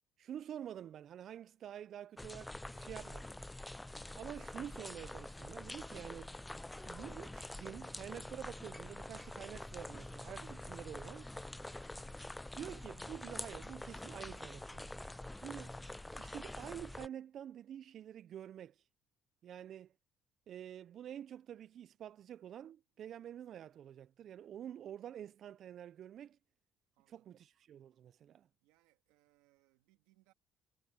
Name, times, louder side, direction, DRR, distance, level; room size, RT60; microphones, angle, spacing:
voice 1, 0.2-3.3 4.2-6.3 6.8-11.3 12.5-15.7 16.2-18.8 19.4-19.9 20.5-26.4 27.1-28.5, right 10 dB, 60° right, 0.5 m, -48 dB
sound 1, 2.2-17.1, left 1 dB, 10° left, 0.4 m, -46 dB
voice 2, 26.9-27.3 28.6-30.3, right 19 dB, 90° right, 2.6 m, -74 dB
supercardioid pair, 80°, 0 cm